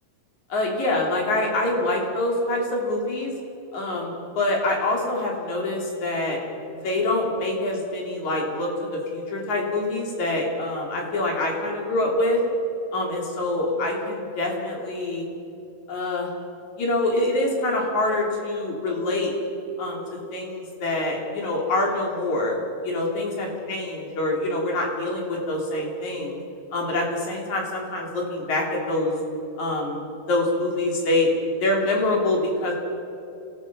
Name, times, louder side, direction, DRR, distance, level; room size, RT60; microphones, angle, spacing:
voice 1, 0.5-3.3 3.7-6.4 6.7-12.4 12.9-15.3 15.9-16.3 16.8-19.3 19.8-20.0 20.3-22.6 22.8-26.4 26.7-29.1 29.6-31.3 31.6-32.7, left 2 dB, 55° left, -1 dB, 4.4 m, -25 dB
26.5 x 18.0 x 5.4 m, 2.8 s
omnidirectional pair, 3.9 m